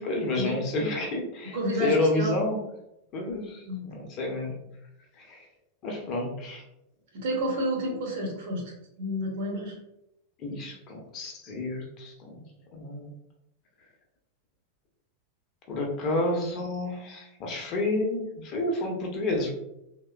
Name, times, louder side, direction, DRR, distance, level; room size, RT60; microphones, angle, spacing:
voice 1, 0.0-2.6 3.1-4.5 5.2-5.4 5.8-6.6 10.4-12.4 12.7-13.1 15.7-19.5, left 2 dB, 35° left, 0 dB, 0.7 m, -30 dB
voice 2, 1.5-2.3 3.6-3.8 7.1-9.8, equal, 55° right, 0 dB, 0.8 m, -30 dB
3.1 x 2.1 x 2.3 m, 0.84 s
figure-of-eight pair, 90°, 0 cm